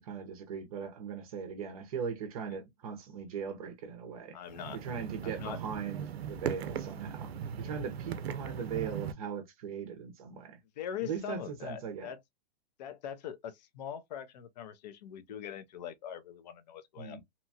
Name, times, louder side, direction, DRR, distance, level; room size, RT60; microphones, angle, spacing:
voice 1, 0.0-4.4 4.7-10.6 11.0-12.1 17.0-17.2, right 6 dB, 35° right, 0.6 m, -39 dB
voice 2, 4.3-4.8 5.2-5.6 10.8-12.2 12.8-17.2, left 9 dB, 45° left, 0.5 m, -42 dB
sound 1, 4.5-9.1, right 8 dB, 80° right, 0.5 m, -39 dB
2.8 x 2.2 x 2.6 m
hypercardioid pair, 155°, 31 cm